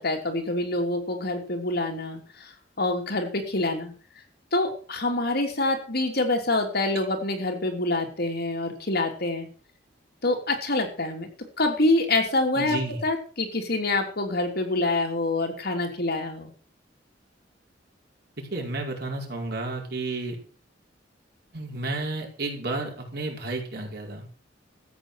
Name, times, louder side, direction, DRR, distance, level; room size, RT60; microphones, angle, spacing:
voice 1, 0.0-3.9 4.5-9.5 10.2-11.3 11.6-12.8 13.0-16.5, left 2 dB, 60° left, 3 dB, 3.3 m, -26 dB
voice 2, 12.5-13.0 18.4-20.4 21.5-24.2, right 2 dB, 60° right, 1 dB, 4.8 m, -32 dB
13.5 x 8.8 x 6.5 m, 0.41 s
head